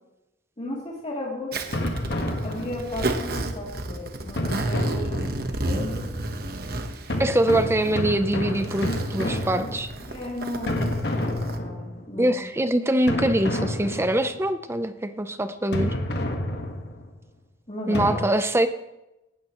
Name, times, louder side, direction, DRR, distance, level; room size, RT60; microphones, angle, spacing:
voice 1, 0.6-1.6 2.4-5.4 5.6-6.1 10.1-12.4 17.7-18.3, left 1 dB, 35° left, -4 dB, 3.0 m, -35 dB
Zipper (clothing), 1.5-11.6, right 2 dB, 60° right, 1.2 m, -32 dB
sound 1, 1.7-3.1 4.4-5.7 7.1-10.2 10.7-12.2 13.1-14.5 15.7-17.1 17.9-18.1, left 1 dB, 65° left, 1.6 m, -29 dB
voice 2, 7.2-9.9 12.2-16.0 17.9-18.7, right 1 dB, 15° right, 10 dB, 0.6 m, -23 dB
17.5 x 12.5 x 3.1 m, 0.93 s
head